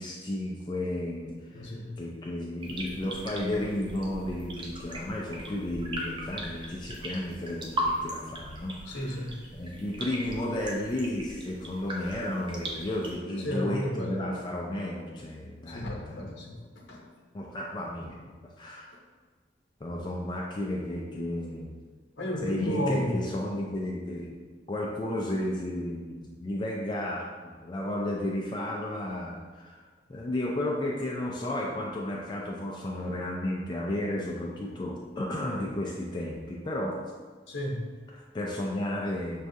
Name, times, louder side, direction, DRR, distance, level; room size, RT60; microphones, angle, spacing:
voice 1, 0.0-16.3 17.3-18.1 18.6-18.9 19.8-21.7 22.4-24.3 24.7-29.8 30.1-37.0 38.1-39.5, left 1 dB, 25° left, -2 dB, 0.3 m, -33 dB
voice 2, 1.5-1.9 8.9-9.4 13.4-14.2 15.7-17.0 18.0-18.1 22.2-23.2 37.5-37.9, equal, 85° left, -1 dB, 0.8 m, -32 dB
sound 1, 2.6-13.2, right 1 dB, 25° right, 0.5 m, -38 dB
6.1 x 2.3 x 2.6 m, 1.5 s
head